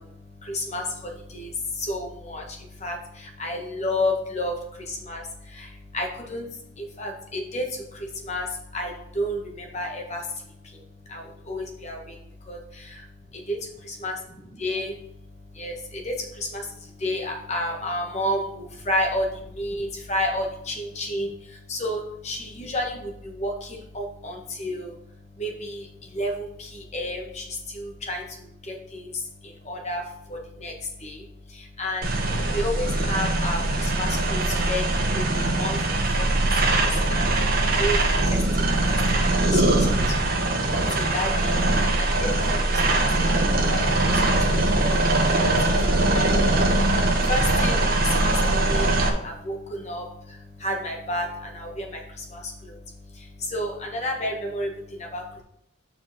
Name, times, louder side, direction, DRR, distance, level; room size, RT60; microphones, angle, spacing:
voice 1, 0.0-12.2 12.5-13.1 13.3-13.6 14.0-15.0 15.5-25.0 25.4-36.3 36.7-37.3 37.8-38.0 38.3-40.1 40.7-45.0 45.2-52.8 53.1-55.4, left 1 dB, 35° left, 1 dB, 1.6 m, -32 dB
sound 1, 32.0-49.1, right 2 dB, 45° right, 1.3 m, -22 dB
6.0 x 4.9 x 6.3 m, 0.75 s
head